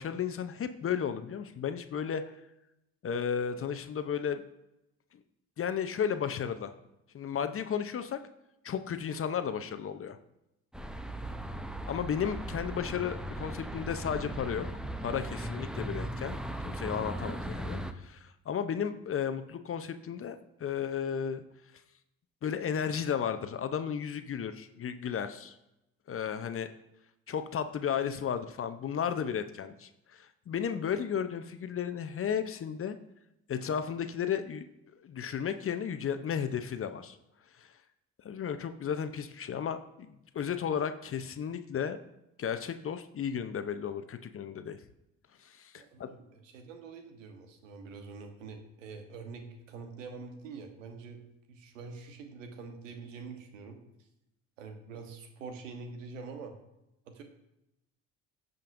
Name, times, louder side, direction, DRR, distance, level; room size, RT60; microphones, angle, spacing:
voice 1, 0.0-2.2 3.0-4.4 5.6-6.7 7.1-8.2 8.6-10.2 11.9-14.7 15.0-16.4 16.6-21.4 22.4-25.6 26.1-26.7 27.3-33.0 33.5-34.7 34.9-37.2 37.6-37.7 38.2-42.0 42.4-44.8 45.4-46.1, left 8 dB, 35° left, 10 dB, 0.7 m, -34 dB
sound 1, 10.7-17.9, right 1 dB, ahead, 0.6 m, -38 dB
voice 2, 45.7-54.1 54.6-56.6 57.0-57.2, right 4 dB, 90° right, 6 dB, 1.1 m, -45 dB
15.5 x 5.3 x 2.6 m, 0.87 s
hypercardioid pair, 60°, 37 cm